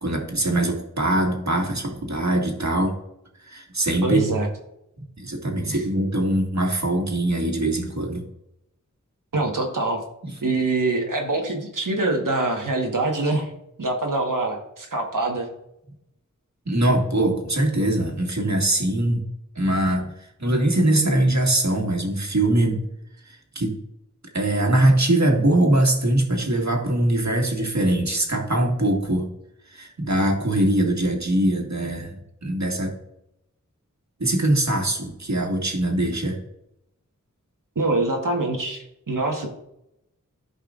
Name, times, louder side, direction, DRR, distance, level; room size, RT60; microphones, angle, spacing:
voice 1, 0.0-3.0 3.4-4.4 5.2-8.2 16.7-19.2 19.6-20.1 20.4-22.8 23.3-23.7 24.3-29.3 29.7-32.2 32.4-32.9 34.2-36.4, right 1 dB, 60° right, 1 dB, 1.9 m, -22 dB
voice 2, 4.0-4.5 5.6-5.8 9.3-10.0 10.4-13.5 13.8-15.5 37.7-39.5, right 2 dB, 85° right, 1 dB, 1.5 m, -24 dB
14.0 x 5.4 x 2.5 m, 0.82 s
wide cardioid pair, 40°, 31 cm